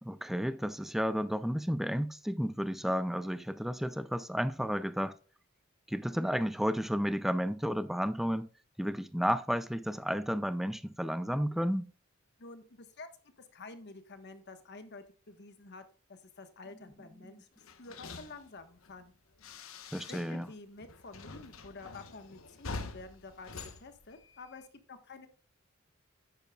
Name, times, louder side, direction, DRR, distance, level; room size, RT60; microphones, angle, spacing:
voice 1, 0.0-5.1 5.9-8.5 8.8-11.9 17.3-17.4 19.9-20.5, equal, ahead, 0.5 m, -32 dB
voice 2, 12.4-13.1 13.4-19.1 20.1-25.3, left 3 dB, 55° left, 1.3 m, -50 dB
sound 1, 17.6-20.5 20.8-24.7, left 3 dB, 75° left, 1.0 m, -46 dB
10.5 x 8.8 x 2.3 m
head